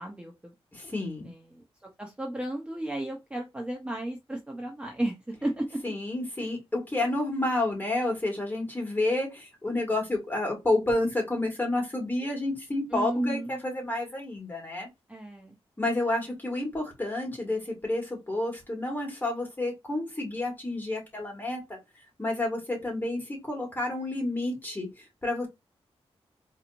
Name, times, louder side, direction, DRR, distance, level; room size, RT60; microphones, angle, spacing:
voice 1, 0.0-0.6 1.2-5.8 12.9-13.6 15.1-15.6, right 1 dB, 10° right, 0.7 m, -34 dB
voice 2, 0.7-1.3 5.8-14.9 15.8-21.8 22.2-25.5, left 2 dB, 20° left, 1.8 m, -30 dB
4.0 x 3.0 x 2.5 m
wide cardioid pair, 115°, 10 cm